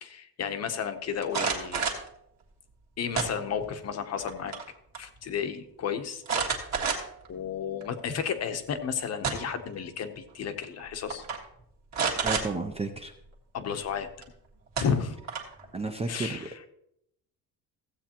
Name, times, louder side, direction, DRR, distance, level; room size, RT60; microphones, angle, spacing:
voice 1, 0.0-2.0 3.0-4.5 5.0-6.2 7.3-11.2 13.5-14.1 14.8-15.2 16.1-16.5, left 7 dB, 40° left, 8 dB, 0.8 m, -32 dB
sound 1, 1.2-2.1 3.1-3.8 4.2-4.7 4.9-5.0 6.3-7.3 7.8-7.9 8.9-9.6 10.6-10.8 11.1-11.4 11.9-12.5 14.2-14.3 14.8-15.6, right 5 dB, 45° right, 1.6 m, -29 dB
voice 2, 12.2-13.1 15.7-16.5, right 3 dB, 15° right, 5 dB, 0.4 m, -32 dB
15.5 x 7.9 x 2.9 m, 0.77 s
cardioid pair, 170°, 39 cm